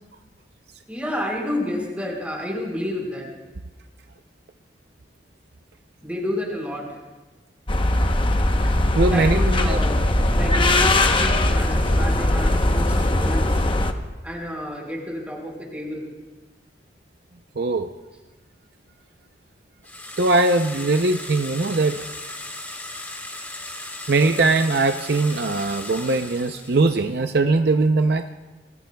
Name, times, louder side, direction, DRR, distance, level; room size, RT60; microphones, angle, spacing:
voice 1, 0.9-3.3 6.0-6.9 9.1-10.1 10.3-13.6 14.2-16.1, left 1 dB, 10° right, -1 dB, 4.7 m, -30 dB
sound 1, 7.7-13.9, left 1 dB, 30° left, 0.9 m, -20 dB
voice 2, 8.5-9.8 17.6-17.9 20.2-22.0 24.1-28.3, right 3 dB, 60° right, 7 dB, 0.6 m, -21 dB
sound 2, 19.8-27.2, left 1 dB, 10° left, 1.5 m, -37 dB
28.5 x 21.5 x 2.3 m, 1.2 s
head